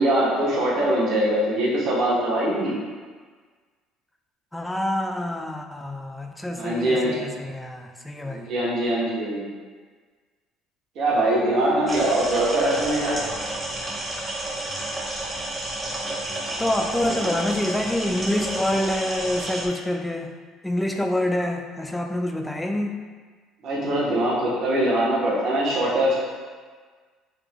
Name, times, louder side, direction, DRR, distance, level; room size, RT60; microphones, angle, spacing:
voice 1, 0.0-2.7 6.5-7.2 8.2-9.5 10.9-13.2 23.6-26.1, right 1 dB, 60° right, -5 dB, 1.1 m, -22 dB
voice 2, 4.5-8.5 14.2-14.3 16.6-20.4 20.6-22.9, left 1 dB, 10° left, 4 dB, 0.4 m, -26 dB
sound 1, 11.9-19.7, right 1 dB, 20° right, 0.9 m, -31 dB
3.5 x 2.9 x 3.4 m, 1.5 s
supercardioid pair, 95°, 0 cm